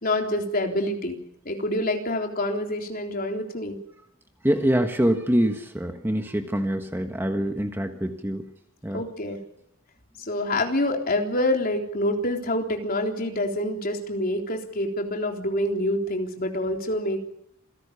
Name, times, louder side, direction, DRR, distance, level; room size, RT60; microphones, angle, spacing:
voice 1, 0.0-1.2 1.5-3.8 8.9-9.4 10.3-17.2, left 1 dB, 45° left, 2 dB, 3.8 m, -26 dB
voice 2, 4.4-8.4 8.8-9.0, equal, 10° right, 5 dB, 1.4 m, -25 dB
28.0 x 17.5 x 7.1 m, 0.74 s
head